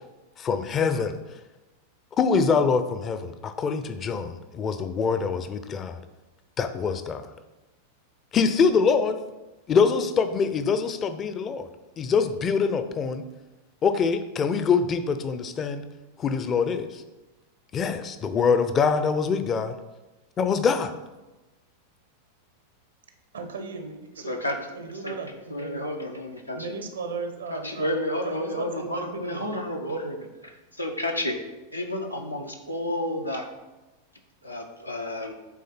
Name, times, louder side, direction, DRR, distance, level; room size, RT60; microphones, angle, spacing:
voice 1, 0.4-1.2 2.2-6.0 6.6-7.3 8.3-9.2 9.7-11.7 12.0-13.2 13.8-15.8 16.2-17.0 17.7-19.7 20.4-20.9, left 5 dB, 25° left, 10 dB, 0.5 m, -24 dB
voice 2, 23.3-24.4 24.7-25.8 26.5-28.0 28.2-29.5, right 4 dB, 70° right, 7 dB, 0.8 m, -36 dB
voice 3, 24.2-24.6 25.0-25.2 25.5-26.7 27.5-31.4 31.7-33.5 34.4-35.3, left 1 dB, 85° left, 2 dB, 0.9 m, -31 dB
8.5 x 3.8 x 4.2 m, 1.1 s
figure-of-eight pair, 90°, 0 cm